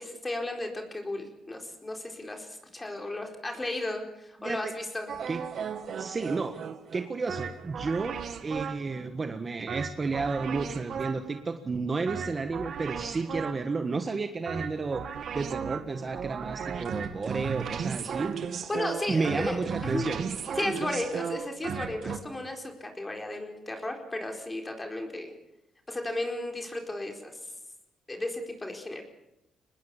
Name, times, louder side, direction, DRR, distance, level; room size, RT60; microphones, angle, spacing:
voice 1, 0.0-5.1 18.7-20.1 20.5-25.3 25.9-27.5 28.1-29.0, left 2 dB, 20° left, 3 dB, 4.4 m, -34 dB
sound 1, 5.1-9.0 9.7-11.4 12.1-13.8 14.5-22.2, right 7 dB, 60° right, 2.1 m, -36 dB
voice 2, 6.0-6.6 6.9-15.0 15.3-18.5 19.1-20.2, right 4 dB, 35° right, 7 dB, 1.5 m, -32 dB
24.5 x 20.0 x 7.2 m, 0.87 s
cardioid pair, 90°, 0 cm